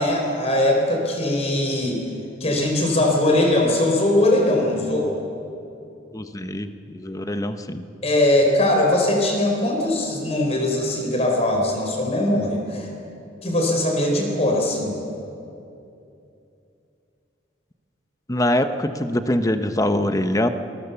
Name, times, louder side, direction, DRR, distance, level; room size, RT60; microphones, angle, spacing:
voice 1, 0.0-2.0 2.4-5.1 8.0-12.9 13.4-15.0, left 1 dB, 35° left, 1 dB, 4.2 m, -20 dB
voice 2, 6.1-7.8 18.3-20.5, left 1 dB, 20° left, 9 dB, 1.0 m, -23 dB
25.5 x 21.0 x 7.0 m, 2.7 s
head